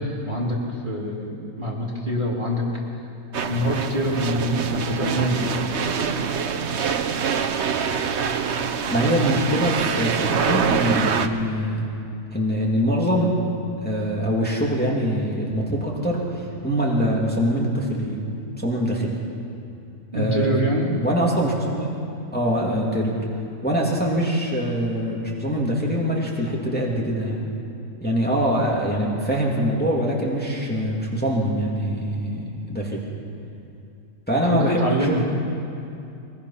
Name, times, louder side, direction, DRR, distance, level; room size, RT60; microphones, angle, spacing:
voice 1, 0.3-2.6 3.4-5.4 9.3-9.4 20.1-20.9 34.4-35.2, equal, 30° right, -3 dB, 2.9 m, -25 dB
sound 1, 3.3-11.3, right 6 dB, 50° right, 1.1 m, -25 dB
voice 2, 8.8-11.9 12.3-13.3 13.8-18.2 18.6-19.1 20.1-20.5 21.0-22.0 22.3-23.1 23.6-27.4 28.0-33.0 34.3-35.2, equal, 5° left, -4 dB, 2.7 m, -23 dB
22.5 x 21.0 x 5.9 m, 2.7 s
omnidirectional pair, 1.6 m